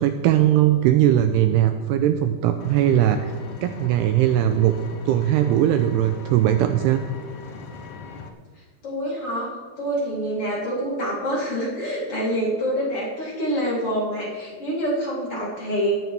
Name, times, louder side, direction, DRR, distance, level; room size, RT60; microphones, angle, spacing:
voice 1, 0.0-4.7 5.1-7.0, right 11 dB, 85° right, 8 dB, 2.4 m, -19 dB
Vehicle, 2.6-8.3, left 4 dB, 85° left, 1.7 m, -40 dB
voice 2, 8.8-9.5 9.8-16.0, equal, 35° left, -6 dB, 3.9 m, -26 dB
17.5 x 14.0 x 3.5 m, 1.5 s
omnidirectional pair, 5.3 m